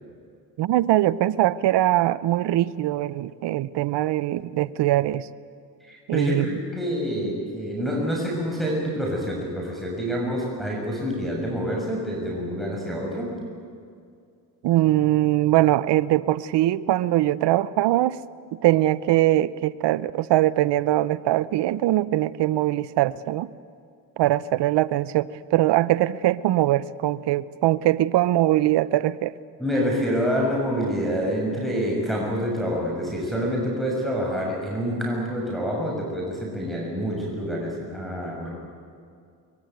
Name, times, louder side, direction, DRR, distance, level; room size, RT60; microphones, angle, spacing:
voice 1, 0.6-5.3 6.1-6.5 14.6-18.2 18.6-23.5 24.2-29.3, right 15 dB, 70° right, 18 dB, 0.8 m, -22 dB
voice 2, 5.8-13.3 29.6-38.5, equal, ahead, -3 dB, 7.0 m, -27 dB
23.5 x 22.0 x 9.3 m, 2.3 s
supercardioid pair, 65°, 43 cm